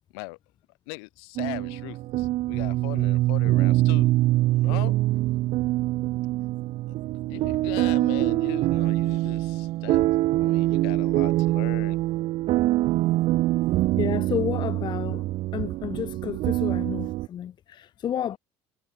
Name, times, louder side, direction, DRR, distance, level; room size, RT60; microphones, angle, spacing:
voice 1, 0.9-4.2 4.6-5.0 7.1-10.1 10.4-12.0, left 35 dB, 85° left, 4.5 m, -39 dB
sound 1, 1.4-17.3, right 16 dB, 55° right, 0.7 m, -24 dB
voice 2, 14.0-15.3 15.5-18.4, left 10 dB, 35° left, 0.6 m, -31 dB
cardioid pair, 125°, 13 cm